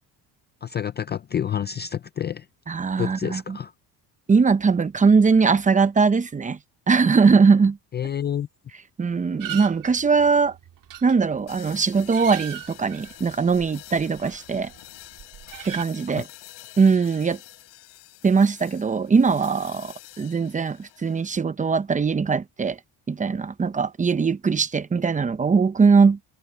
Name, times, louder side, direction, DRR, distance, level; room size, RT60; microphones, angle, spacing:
voice 1, 0.6-2.5 3.0-3.7 7.9-8.5 16.1-16.2, left 9 dB, 25° left, 0.4 m, -28 dB
voice 2, 2.7-3.6 4.3-6.6 6.9-7.8 9.0-10.6 11.0-14.7 15.6-16.3 16.8-17.4 18.2-22.8 23.1-26.2, right 5 dB, 20° right, 0.8 m, -20 dB
sound 1, 9.4-14.8 15.0-15.8, right 11 dB, 45° right, 2.4 m, -39 dB
sound 2, 11.5-21.3, left 17 dB, 70° left, 4.4 m, -47 dB
cardioid pair, 130°, 43 cm